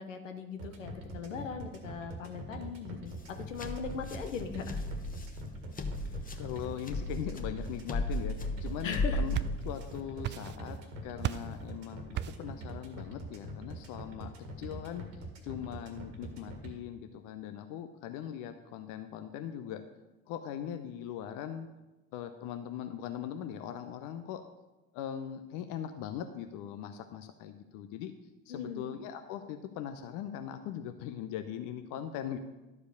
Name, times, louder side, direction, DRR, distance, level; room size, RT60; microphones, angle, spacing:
voice 1, 0.0-4.8 8.8-9.4 28.5-28.9, left 5 dB, 80° left, 6 dB, 1.1 m, -39 dB
sound 1, 0.6-16.7, right 1 dB, 70° right, 1.7 m, -43 dB
sound 2, 3.1-10.0, left 2 dB, 20° left, 1.1 m, -36 dB
voice 2, 6.4-8.3 8.6-9.4 9.6-10.8 11.0-12.1 12.4-19.8 20.3-21.7 22.1-24.4 24.9-28.1 28.5-32.4, left 10 dB, 55° left, 8 dB, 0.8 m, -40 dB
sound 3, 9.1-9.9 10.2-10.8 11.2-11.6 12.2-12.5, right 12 dB, 30° right, 0.4 m, -36 dB
12.0 x 5.0 x 6.5 m, 1.1 s
figure-of-eight pair, 60°, 38 cm